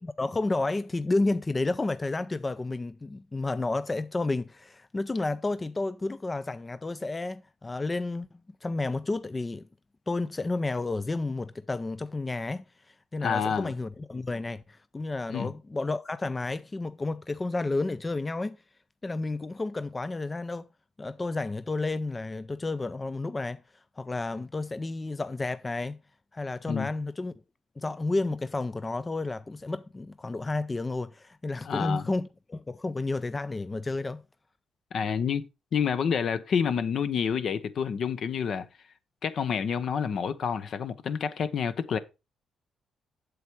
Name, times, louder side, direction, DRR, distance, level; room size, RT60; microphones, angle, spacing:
voice 1, 0.0-8.3 8.6-9.6 10.1-18.6 19.0-20.7 21.0-23.6 24.0-26.0 26.3-27.3 27.8-34.2, left 2 dB, 20° left, 0.4 m, -31 dB
voice 2, 13.2-13.7 15.3-15.5 26.7-26.9 31.6-32.0 34.9-35.5 35.7-38.7 39.2-42.0, left 7 dB, 60° left, 0.9 m, -28 dB
8.0 x 7.2 x 4.6 m
cardioid pair, 90°, 0 cm